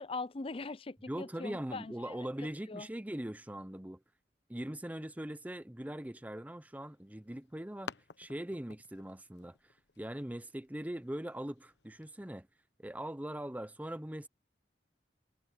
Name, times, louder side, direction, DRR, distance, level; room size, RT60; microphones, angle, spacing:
voice 1, 0.0-1.9 2.7-2.9, left 3 dB, 30° left, 0.5 m, -41 dB
voice 2, 1.1-4.0 4.5-12.5 12.8-14.3, right 1 dB, 10° right, 0.7 m, -41 dB
sound 1, 6.9-12.1, left 5 dB, 80° left, 1.0 m, -53 dB
head